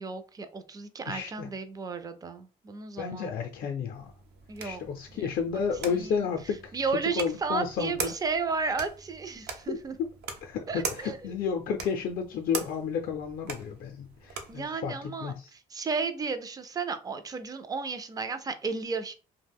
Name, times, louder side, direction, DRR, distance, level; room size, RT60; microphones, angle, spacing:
voice 1, 0.0-3.3 4.5-4.8 5.1-5.3 5.5-6.3 6.7-9.9 10.7-11.2 14.5-19.1, right 4 dB, 20° right, 10 dB, 0.4 m, -33 dB
voice 2, 1.1-1.5 3.0-4.1 4.6-6.8 7.2-8.1 9.7-10.1 10.4-15.0 15.2-15.5, left 6 dB, 60° left, 3 dB, 0.4 m, -32 dB
sound 1, 3.9-14.7, right 5 dB, 75° right, 0.6 m, -41 dB
2.4 x 2.1 x 3.4 m, 0.33 s
cardioid pair, 110°, 17 cm